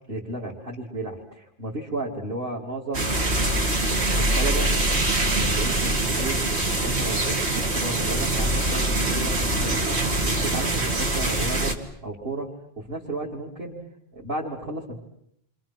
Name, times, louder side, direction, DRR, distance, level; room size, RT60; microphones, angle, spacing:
voice 1, 0.1-3.2 4.1-4.7 5.1-10.0 10.3-11.8 12.0-12.5 12.8-13.8 14.1-15.0, right 2 dB, 60° right, -2 dB, 3.1 m, -33 dB
sound 1, 2.9-11.7, right 2 dB, 90° right, 2.5 m, -24 dB
30.0 x 25.5 x 6.0 m, 0.74 s
omnidirectional pair, 1.1 m